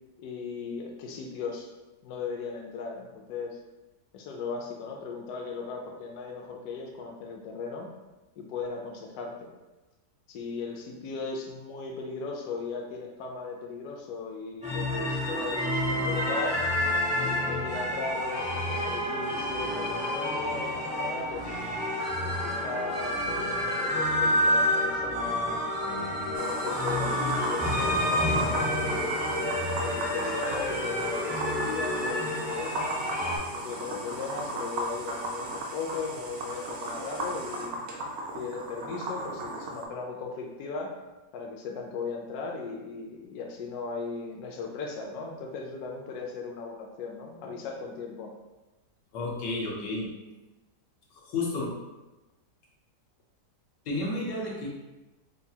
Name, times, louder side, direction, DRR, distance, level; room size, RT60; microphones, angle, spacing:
voice 1, 0.2-1.7 2.0-3.6 4.1-7.9 8.4-9.5 10.3-16.6 17.2-21.6 22.3-25.6 26.4-29.4 29.8-33.1 33.5-37.7 38.3-41.0 41.3-48.3, left 4 dB, 70° left, 1 dB, 1.0 m, -37 dB
sound 1, 14.6-33.4, left 1 dB, 10° right, 0.4 m, -29 dB
sound 2, 26.3-39.9, right 1 dB, 70° right, 0.6 m, -35 dB
voice 2, 49.1-50.1 51.1-51.7 53.8-54.7, left 2 dB, 90° left, -3 dB, 1.5 m, -31 dB
4.5 x 2.3 x 2.7 m, 1.1 s
omnidirectional pair, 1.8 m